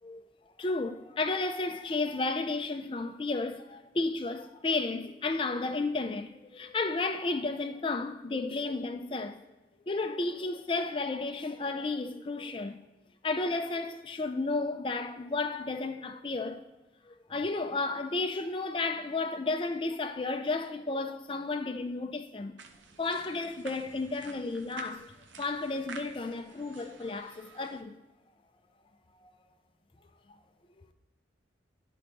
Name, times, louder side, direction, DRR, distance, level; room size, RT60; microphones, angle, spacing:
voice 1, 0.6-9.4 9.9-12.8 13.2-16.6 17.1-22.6 23.0-25.1 25.4-27.9 29.2-29.3 30.8-30.9, left 3 dB, 25° left, 0.4 m, -33 dB
sound 1, 22.6-27.8, right 4 dB, 85° right, 0.8 m, -50 dB
11.5 x 3.8 x 3.5 m
head